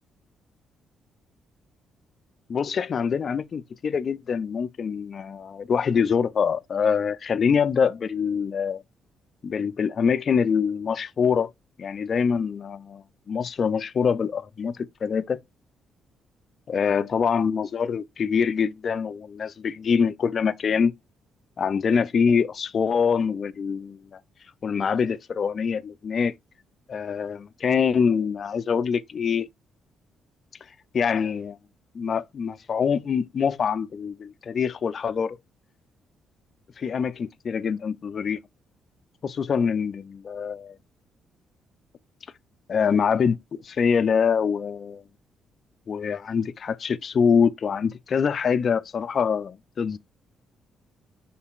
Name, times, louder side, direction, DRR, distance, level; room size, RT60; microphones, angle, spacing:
voice 1, 2.5-8.8 9.4-11.5 11.8-15.4 16.7-20.9 21.6-24.2 24.6-26.3 26.9-29.5 30.9-31.6 31.9-35.4 36.8-38.4 39.2-40.8 42.7-45.0 45.9-50.0, left 6 dB, 50° left, 0.4 m, -24 dB
5.6 x 3.9 x 2.4 m
cardioid pair, 90°, 0 cm